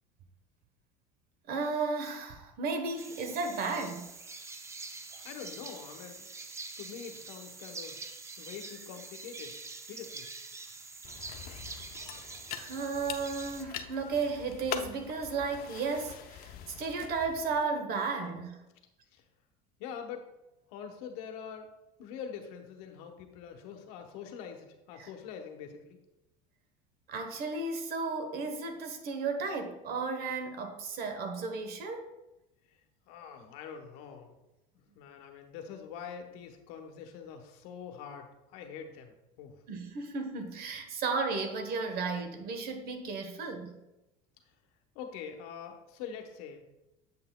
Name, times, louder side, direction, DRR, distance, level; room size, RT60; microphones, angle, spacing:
voice 1, 1.5-4.1 12.6-18.6 25.0-25.1 27.1-32.1 39.7-43.8, right 4 dB, 55° right, 6 dB, 1.0 m, -34 dB
sound 1, 3.0-13.6, right 3 dB, 15° right, 0.4 m, -45 dB
voice 2, 4.8-6.3 6.8-8.0 8.4-9.6 9.9-10.3 19.1-19.2 19.8-20.3 20.7-21.7 22.0-26.0 32.7-32.8 33.1-34.4 34.9-39.6 44.9-46.6, left 7 dB, 80° left, 5 dB, 0.9 m, -44 dB
sound 2, 11.0-17.6, left 9 dB, 50° left, 0.5 m, -44 dB
7.6 x 5.7 x 2.2 m, 0.96 s
supercardioid pair, 110°, 19 cm